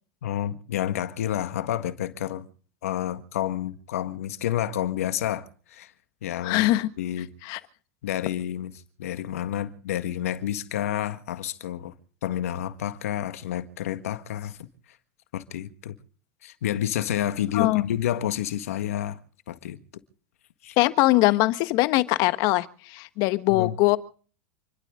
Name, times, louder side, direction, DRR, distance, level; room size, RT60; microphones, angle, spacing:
voice 1, 0.2-2.5 2.8-5.9 6.2-6.7 7.0-7.3 8.0-8.7 9.0-11.9 12.2-14.6 15.3-16.0 16.4-19.2 19.5-19.8 20.6-20.8 23.5-23.7, left 11 dB, 85° left, 1.7 m, -29 dB
voice 2, 6.4-6.9 7.4-7.6 17.5-17.8 20.8-24.0, left 19 dB, 55° left, 1.4 m, -22 dB
28.5 x 12.5 x 3.8 m
supercardioid pair, 115°, 8 cm